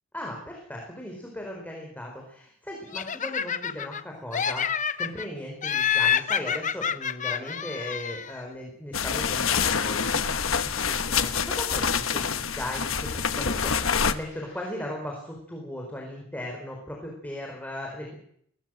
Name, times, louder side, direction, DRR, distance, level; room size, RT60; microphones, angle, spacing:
voice 1, 0.1-4.7 5.0-18.2, left 1 dB, 10° left, 0 dB, 4.7 m, -37 dB
Laughter, 2.9-4.0 4.3-5.3 5.6-8.4, left 8 dB, 40° left, 0.8 m, -28 dB
sound 1, 8.9-14.1, left 6 dB, 75° left, 1.2 m, -26 dB
sound 2, 9.1-14.9, left 5 dB, 55° left, 7.2 m, -53 dB
22.0 x 18.0 x 7.8 m, 0.66 s
head